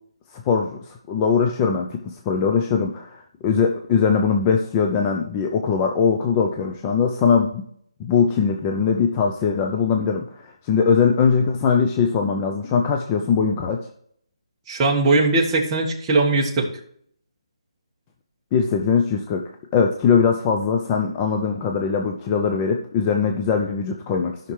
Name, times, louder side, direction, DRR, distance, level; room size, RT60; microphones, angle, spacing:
voice 1, 0.4-7.7 8.0-13.9 18.5-24.5, left 6 dB, 15° left, 3 dB, 0.5 m, -21 dB
voice 2, 14.7-16.7, right 3 dB, 15° right, -2 dB, 1.5 m, -19 dB
15.5 x 5.8 x 3.3 m, 0.65 s
hypercardioid pair, 165°, 3 cm